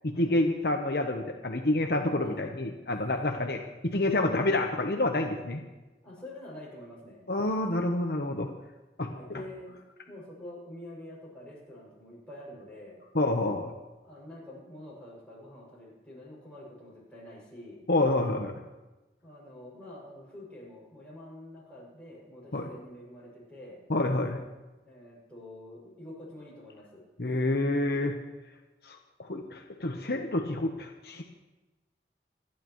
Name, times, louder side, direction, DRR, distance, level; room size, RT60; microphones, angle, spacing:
voice 1, 0.0-5.6 7.3-8.5 9.0-9.1 13.1-13.7 17.9-18.5 22.5-22.7 23.9-24.4 27.2-28.2 28.8-31.2, left 2 dB, 60° left, 3 dB, 1.0 m, -28 dB
voice 2, 2.2-2.5 3.3-3.5 6.0-7.2 9.1-13.0 14.0-17.8 19.2-23.8 24.8-27.0, left 1 dB, 5° left, -7 dB, 6.5 m, -47 dB
28.0 x 10.5 x 3.1 m, 1.1 s
head